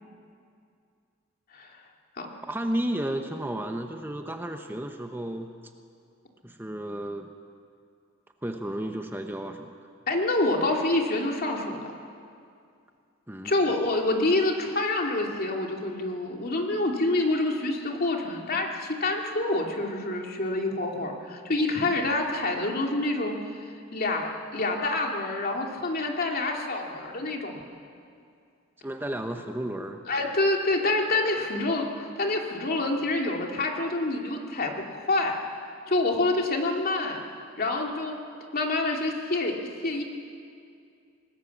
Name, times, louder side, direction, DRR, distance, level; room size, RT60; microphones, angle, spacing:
voice 1, 2.5-5.5 6.4-7.3 8.4-9.8 13.3-13.7 28.8-30.0, right 1 dB, 10° right, 5 dB, 0.9 m, -33 dB
voice 2, 10.1-11.8 13.4-23.4 23.9-27.6 30.1-35.3 35.9-37.2 37.6-38.2 38.5-39.6 39.8-40.0, left 2 dB, 50° left, 1 dB, 2.6 m, -27 dB
25.0 x 19.0 x 7.3 m, 2.4 s
head